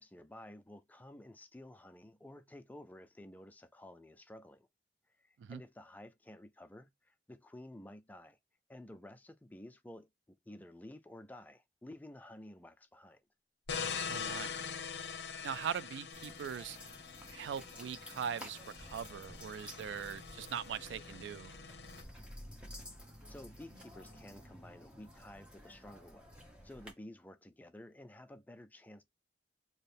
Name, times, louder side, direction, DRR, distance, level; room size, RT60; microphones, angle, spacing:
voice 1, 0.0-4.7 5.2-8.4 8.7-13.2 23.3-29.0, left 1 dB, 10° left, 0.3 m, -53 dB
sound 1, 13.7-22.0, left 6 dB, 70° left, 0.6 m, -44 dB
voice 2, 14.1-14.5 15.4-16.8 17.3-21.5, right 8 dB, 85° right, 0.3 m, -41 dB
sound 2, 16.1-26.9, equal, 5° right, 0.9 m, -53 dB
4.3 x 2.1 x 3.4 m
head